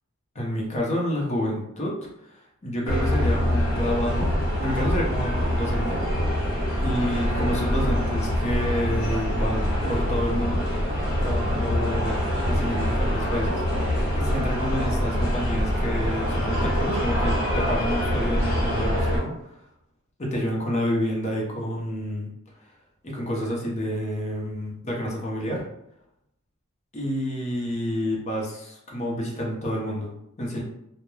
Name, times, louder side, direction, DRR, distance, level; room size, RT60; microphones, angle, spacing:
voice 1, 0.3-1.9 2.2-6.0 6.8-10.6 11.2-12.2 12.4-13.6 14.1-19.5 20.2-22.3 23.0-25.6 26.9-30.1 30.4-30.6, equal, 30° left, -2 dB, 0.6 m, -29 dB
sound 1, 2.9-19.2, equal, 65° left, 1.1 m, -25 dB
2.2 x 2.1 x 3.0 m, 0.80 s
head